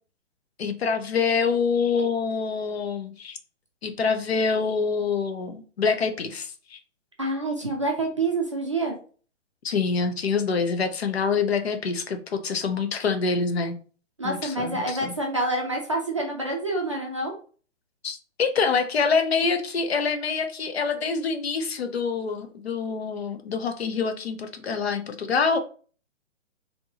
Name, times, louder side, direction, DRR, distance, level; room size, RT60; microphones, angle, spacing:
voice 1, 0.6-3.4 3.8-6.8 9.6-13.8 14.2-15.1 18.0-25.6, left 5 dB, 55° left, 0.7 m, -26 dB
voice 2, 7.2-9.0 14.2-17.3, right 2 dB, 25° right, 0.5 m, -27 dB
4.3 x 2.8 x 2.8 m
hypercardioid pair, 170°, 38 cm